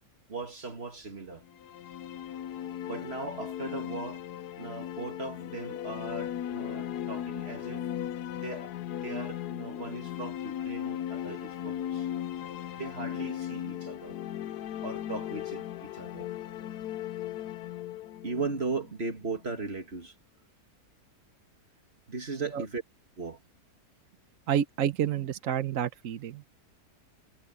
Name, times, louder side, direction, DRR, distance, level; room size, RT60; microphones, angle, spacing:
voice 1, 0.3-1.4 2.9-4.2 4.6-7.9 8.4-12.2 12.8-14.2 14.8-16.3 18.2-20.1 22.1-22.8 23.2-23.4, right 3 dB, 40° right, 2.2 m, -38 dB
sound 1, 1.5-19.4, left 11 dB, 85° left, 1.3 m, -37 dB
voice 2, 24.5-26.4, right 9 dB, 65° right, 1.1 m, -29 dB
omnidirectional pair, 1.6 m